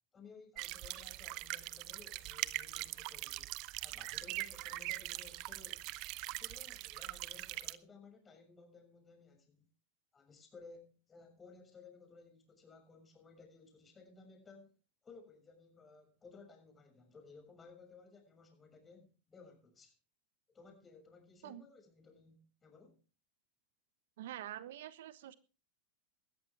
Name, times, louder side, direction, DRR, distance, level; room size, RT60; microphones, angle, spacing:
voice 1, 0.1-3.5 3.8-6.0 6.3-9.7 10.1-14.8 15.0-19.9 20.5-23.0, left 4 dB, 25° left, 6.6 m, -58 dB
sound 1, 0.6-7.8, right 19 dB, 55° right, 0.8 m, -42 dB
voice 2, 24.2-25.3, right 12 dB, 75° right, 1.2 m, -46 dB
19.0 x 13.5 x 3.5 m
hypercardioid pair, 100°, 0 cm